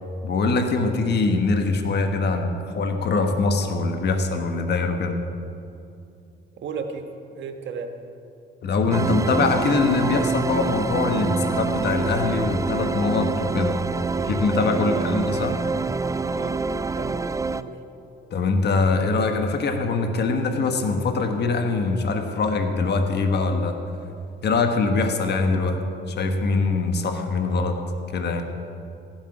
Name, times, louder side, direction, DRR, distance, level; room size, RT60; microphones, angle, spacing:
voice 1, 0.2-5.2 8.6-13.8 14.2-15.5 18.3-23.8 24.4-25.8 26.1-27.8 28.1-28.5, left 3 dB, 55° left, 5 dB, 1.3 m, -23 dB
voice 2, 6.6-7.0 7.3-7.9 14.8-15.1 16.2-16.6 16.9-17.2 17.5-17.7, right 5 dB, 65° right, 5 dB, 1.3 m, -34 dB
sound 1, 8.9-17.6, right 4 dB, 15° right, 0.4 m, -26 dB
15.0 x 12.0 x 4.9 m, 2.7 s
cardioid pair, 90°, 20 cm